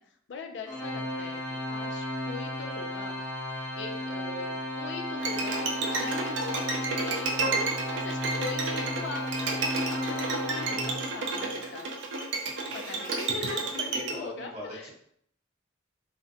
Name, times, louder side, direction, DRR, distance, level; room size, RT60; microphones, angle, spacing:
voice 1, 0.0-7.6 7.9-9.3 9.6-11.9 12.7-14.9, left 4 dB, 60° left, 5 dB, 0.4 m, -41 dB
Organ, 0.7-11.4, left 1 dB, 15° left, 0.7 m, -34 dB
Bowed string instrument, 5.2-14.1, right 3 dB, 70° right, 0.4 m, -31 dB
voice 2, 13.9-14.9, left 1 dB, 30° right, -6 dB, 1.0 m, -41 dB
2.4 x 2.1 x 2.6 m, 0.68 s
head